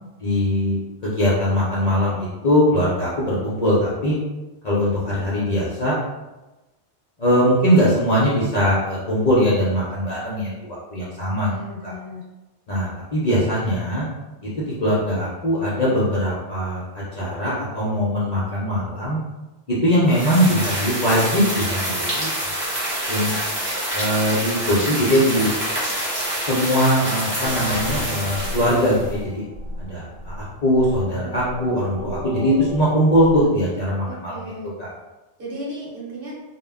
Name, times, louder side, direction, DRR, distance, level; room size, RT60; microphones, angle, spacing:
voice 1, 0.2-4.2 4.6-6.0 7.2-11.5 11.8-11.9 12.7-14.1 14.4-19.2 19.7-22.3 23.1-23.3 23.9-25.5 26.4-29.4 29.8-34.5 34.8-34.9, equal, 50° left, -8 dB, 0.5 m, -21 dB
voice 2, 11.4-12.2 34.1-34.7 35.4-36.3, equal, 55° right, -6 dB, 0.9 m, -35 dB
sound 1, 20.1-29.1, right 1 dB, 15° right, 0.5 m, -26 dB
sound 2, 27.4-33.5, left 1 dB, 85° right, 0.9 m, -33 dB
2.1 x 2.1 x 3.4 m, 1.1 s
omnidirectional pair, 1.2 m